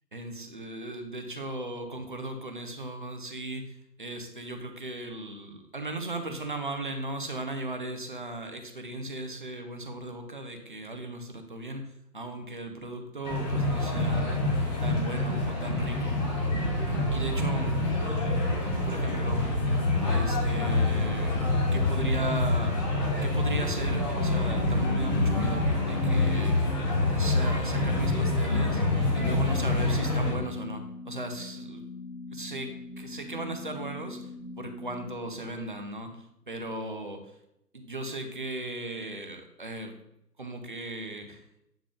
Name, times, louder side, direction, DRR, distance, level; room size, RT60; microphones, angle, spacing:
voice 1, 0.1-3.7 4.0-14.4 14.8-16.2 16.9-17.9 18.8-19.5 20.1-21.3 21.7-22.8 23.2-26.7 27.1-28.8 29.1-31.8 32.3-34.3 34.6-37.3 37.7-39.9 40.4-41.4, right 1 dB, 30° right, 6 dB, 0.7 m, -37 dB
sound 1, 13.2-30.3, left 2 dB, 25° left, 1.8 m, -26 dB
sound 2, 23.8-36.0, left 4 dB, 55° left, 1.5 m, -42 dB
8.9 x 3.5 x 3.7 m, 0.79 s
figure-of-eight pair, 145°, 50 cm